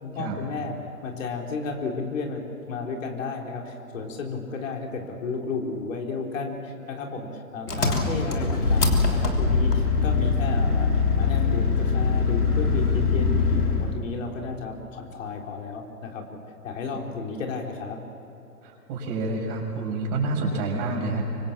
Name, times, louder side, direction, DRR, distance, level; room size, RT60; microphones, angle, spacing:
voice 1, 0.0-0.8 1.0-16.4 16.6-18.0, left 4 dB, 55° left, 1 dB, 3.8 m, -33 dB
Engine, 7.7-14.0, left 4 dB, 85° left, 3.6 m, -22 dB
voice 2, 18.6-21.2, right 3 dB, 35° right, 0 dB, 6.1 m, -28 dB
25.5 x 24.0 x 7.4 m, 3.0 s
figure-of-eight pair, 120°, 45 cm